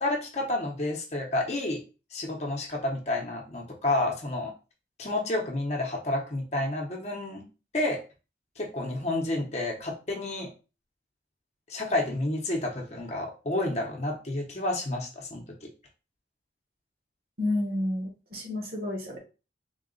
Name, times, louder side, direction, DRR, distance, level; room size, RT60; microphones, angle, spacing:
voice 1, 0.0-1.8 2.1-4.5 5.0-7.4 7.7-8.0 8.6-10.5 11.7-15.7, left 2 dB, 35° left, 1 dB, 0.8 m, -30 dB
voice 2, 17.4-19.2, left 1 dB, 55° right, 0 dB, 1.3 m, -30 dB
3.7 x 2.3 x 3.8 m, 0.32 s
head